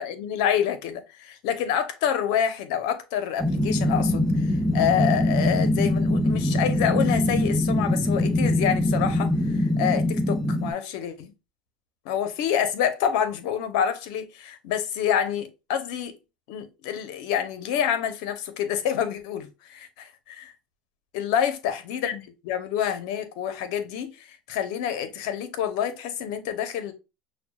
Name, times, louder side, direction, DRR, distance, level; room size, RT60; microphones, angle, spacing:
voice 1, 0.0-11.3 12.0-16.1 16.5-20.5 21.1-26.9, left 9 dB, 75° left, 0.9 m, -27 dB
sound 1, 3.4-10.7, left 1 dB, ahead, 0.8 m, -23 dB
6.0 x 2.3 x 2.3 m
supercardioid pair, 100°, 4 cm